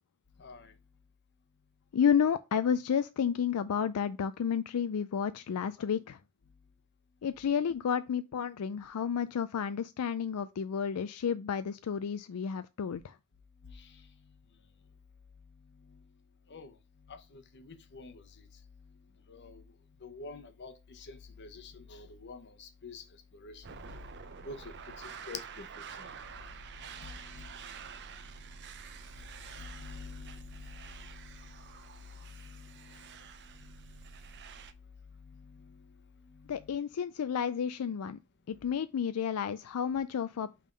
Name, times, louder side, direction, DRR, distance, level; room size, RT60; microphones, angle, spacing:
voice 1, 0.4-0.7 13.6-14.0 15.9-16.0 16.5-16.8 17.1-18.5 19.3-19.6 20.0-23.0 23.3-23.6 24.4-25.7 26.0-26.1 26.8-27.6 29.6-31.8 32.2-33.2 33.5-34.1 35.2-35.9 36.3-36.7, left 4 dB, 55° left, 0.9 m, -48 dB
voice 2, 1.9-6.2 7.2-13.1 36.5-38.2 38.5-40.5, left 7 dB, 85° left, 0.4 m, -31 dB
sound 1, 23.6-34.7, right 6 dB, 55° right, 0.7 m, -48 dB
5.4 x 3.6 x 5.1 m
head